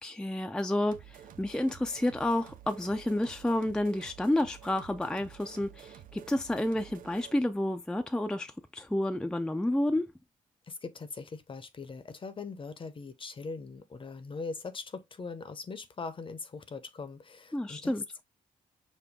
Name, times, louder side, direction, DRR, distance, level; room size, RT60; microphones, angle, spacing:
voice 1, 0.0-10.1 17.5-18.0, left 1 dB, 5° left, 0.4 m, -30 dB
sound 1, 0.9-7.4, right 10 dB, 70° right, 0.5 m, -51 dB
voice 2, 10.6-18.2, left 4 dB, 35° left, 0.7 m, -41 dB
5.2 x 2.2 x 3.5 m
cardioid pair, 70°, 15 cm